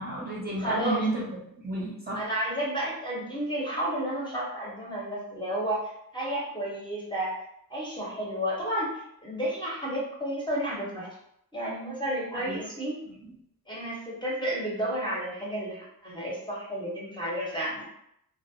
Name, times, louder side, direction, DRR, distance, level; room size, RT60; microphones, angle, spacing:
voice 1, 0.0-2.2 12.3-12.6, right 1 dB, 25° right, -6 dB, 0.7 m, -32 dB
voice 2, 0.6-1.0 2.1-7.3 7.7-11.1 11.5-13.0 13.7-17.8, right 1 dB, 15° left, -5 dB, 0.8 m, -31 dB
2.3 x 2.0 x 2.6 m, 0.75 s
wide cardioid pair, 75°, 35 cm